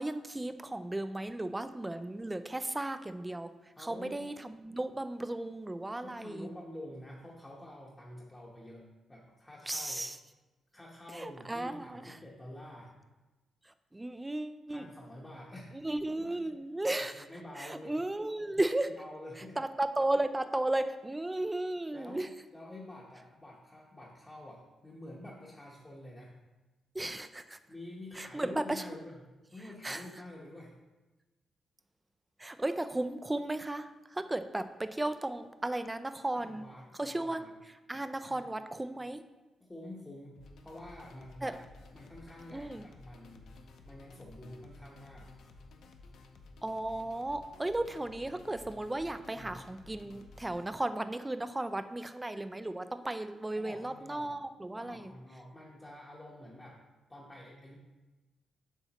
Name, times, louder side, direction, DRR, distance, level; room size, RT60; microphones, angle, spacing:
voice 1, 0.0-3.5 3.8-6.5 9.7-10.2 11.1-12.2 13.9-14.9 15.7-17.3 17.6-18.9 19.6-22.3 26.9-27.6 28.2-28.8 29.8-30.0 32.4-36.7 37.0-37.4 37.9-39.2 41.4-41.6 42.5-42.8 46.6-55.1, right 1 dB, 10° right, 10 dB, 0.3 m, -35 dB
voice 2, 3.8-4.2 6.0-10.0 10.7-12.9 14.7-16.3 17.1-18.0 18.8-19.6 21.9-22.2 22.5-26.3 27.7-29.2 29.5-30.8 34.6-34.7 36.3-37.5 38.2-38.5 39.7-41.6 41.9-43.5 43.8-45.3 49.3-49.6 53.6-54.3 54.7-56.8 57.1-57.8, left 1 dB, 15° left, -3 dB, 0.9 m, -48 dB
sound 1, 40.4-50.6, left 3 dB, 70° left, 0.8 m, -54 dB
8.1 x 6.9 x 2.9 m, 1.2 s
cardioid pair, 155°, 0 cm